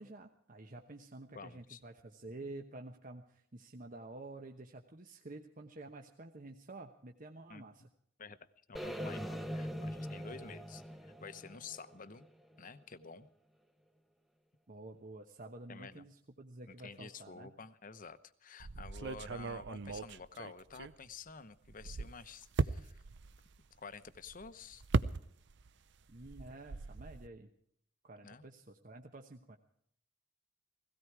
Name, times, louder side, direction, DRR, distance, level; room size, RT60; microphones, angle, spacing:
voice 1, 0.0-7.8 14.7-17.5 26.1-27.5 28.0-29.6, right 2 dB, 45° right, 3 dB, 1.1 m, -50 dB
voice 2, 1.3-1.8 7.5-7.6 8.2-8.4 8.7-12.3 12.6-13.3 15.7-16.0 16.7-23.0 23.8-24.8 28.2-28.5, left 5 dB, 45° left, 13 dB, 0.9 m, -50 dB
sound 1, 8.7-12.8, equal, ahead, 1.0 m, -42 dB
sound 2, 18.6-21.3 21.6-25.7 26.0-27.3, right 4 dB, 60° right, 0.6 m, -38 dB
17.0 x 17.0 x 4.8 m, 0.68 s
head